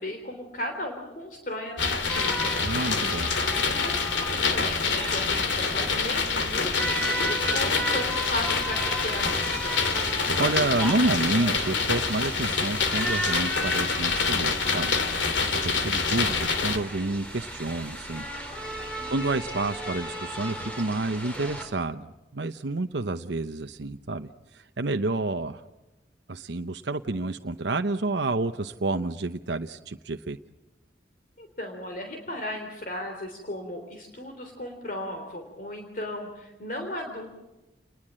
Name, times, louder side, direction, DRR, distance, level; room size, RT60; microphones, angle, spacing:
voice 1, 0.0-2.6 3.8-9.8 18.9-19.1 31.4-37.3, left 1 dB, 45° left, 4 dB, 3.5 m, -36 dB
sound 1, 1.8-16.8, left 4 dB, 80° left, 2.8 m, -26 dB
sound 2, 2.1-21.6, right 1 dB, 5° left, 4.9 m, -35 dB
voice 2, 2.6-3.3 10.4-14.9 15.5-18.3 19.1-25.6 26.3-30.4, right 2 dB, 70° right, 8 dB, 0.8 m, -29 dB
30.0 x 21.0 x 7.6 m, 1.0 s
head